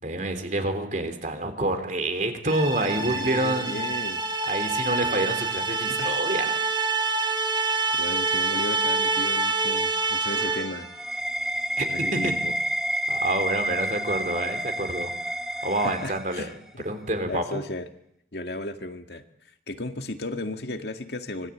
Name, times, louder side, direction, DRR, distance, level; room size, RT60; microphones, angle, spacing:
voice 1, 0.0-3.8 4.5-6.5 11.8-12.3 13.1-15.1 15.6-16.5 16.8-17.6, right 2 dB, 45° right, 8 dB, 3.5 m, -28 dB
sound 1, 2.4-10.9, right 3 dB, 25° right, 3.2 m, -26 dB
voice 2, 3.0-4.2 5.9-6.2 7.9-10.9 11.9-12.5 15.8-16.9 17.3-17.9 18.3-19.2 19.7-21.5, left 2 dB, 70° left, 6 dB, 1.9 m, -35 dB
sound 2, 10.2-16.7, equal, 5° right, 1.3 m, -30 dB
25.0 x 20.0 x 8.6 m, 0.74 s
head